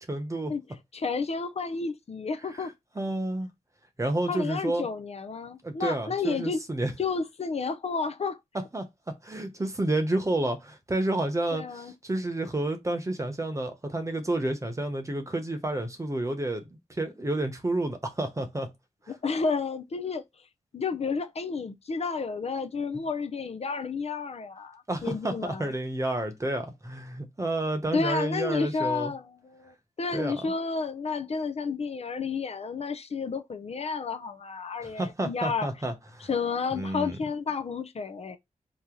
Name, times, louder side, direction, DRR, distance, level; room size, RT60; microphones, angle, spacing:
voice 1, 0.1-0.5 2.5-2.7 2.9-3.5 4.0-4.8 5.6-6.9 8.7-18.7 24.9-29.1 30.1-30.5 34.8-36.3 36.7-37.2, right 2 dB, 25° right, 1.0 m, -30 dB
voice 2, 0.9-2.7 4.3-6.6 7.0-8.4 11.5-11.9 19.1-20.2 20.7-25.7 27.9-35.7 36.3-38.4, left 4 dB, 55° left, 0.5 m, -31 dB
2.9 x 2.7 x 3.8 m
wide cardioid pair, 75°, 13 cm